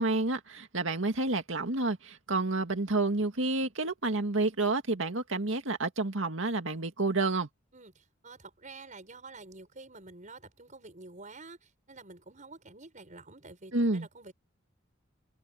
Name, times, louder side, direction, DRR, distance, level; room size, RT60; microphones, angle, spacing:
voice 1, 0.0-7.5 13.7-14.1, right 2 dB, 75° right, 2.1 m, -29 dB
voice 2, 7.7-14.3, right 3 dB, 40° right, 6.6 m, -49 dB
open air
head